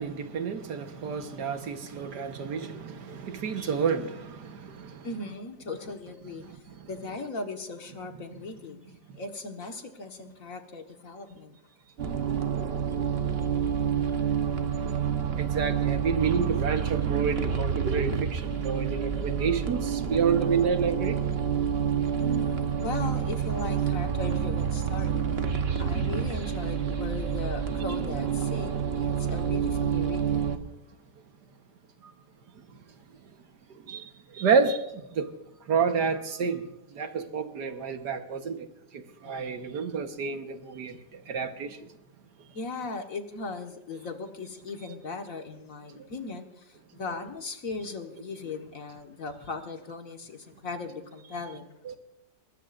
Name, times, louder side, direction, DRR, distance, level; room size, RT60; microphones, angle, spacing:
voice 1, 0.0-5.1 6.8-6.9 9.1-9.2 15.4-21.2 32.0-32.1 33.7-35.3 35.7-36.7 36.9-38.7 38.9-41.9 45.9-46.1 51.9-52.0, right 6 dB, 75° right, 1.8 m, -29 dB
voice 2, 5.0-11.6 22.2-25.2 25.8-30.5 39.2-39.6 42.5-51.8, left 3 dB, 55° left, 1.9 m, -38 dB
sound 1, 12.0-30.6, right 7 dB, 40° right, 1.2 m, -28 dB
21.5 x 19.5 x 2.6 m
omnidirectional pair, 1.8 m